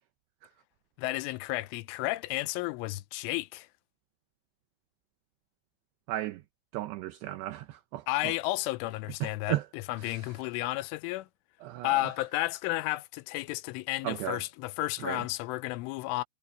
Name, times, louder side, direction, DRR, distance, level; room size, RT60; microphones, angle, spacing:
voice 1, 1.0-3.7 8.1-11.3 11.8-16.2, left 19 dB, 90° left, 3.1 m, -32 dB
voice 2, 6.1-6.4 6.7-8.3 9.2-9.6 10.0-10.2 11.6-12.0 14.0-14.4 15.0-15.2, right 15 dB, 80° right, 2.5 m, -35 dB
omnidirectional pair, 5.6 m